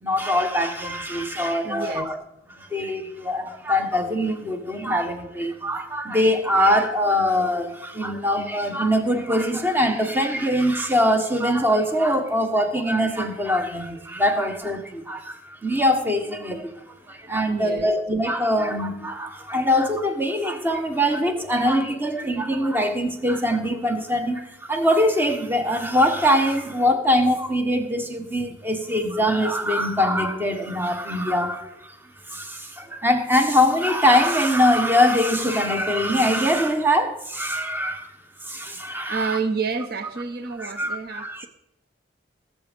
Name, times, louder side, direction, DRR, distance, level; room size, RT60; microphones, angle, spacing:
voice 1, 0.0-2.2 2.5-32.0 32.3-39.4 40.6-41.5, equal, 10° right, 1.3 m, -23 dB
voice 2, 1.6-2.1 17.5-17.9 38.9-41.5, right 4 dB, 55° right, 0.7 m, -29 dB
19.0 x 7.6 x 5.3 m
head